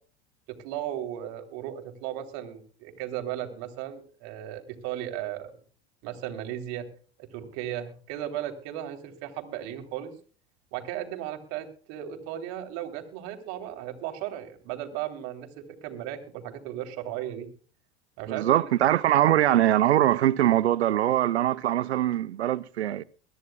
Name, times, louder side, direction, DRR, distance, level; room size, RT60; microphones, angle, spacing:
voice 1, 0.5-5.5 6.0-6.9 7.2-10.1 10.7-17.5 18.2-18.7, right 11 dB, 60° right, 3.5 m, -36 dB
voice 2, 18.3-23.0, right 12 dB, 85° right, 0.8 m, -22 dB
23.0 x 14.0 x 2.3 m
hypercardioid pair, 85°, 32 cm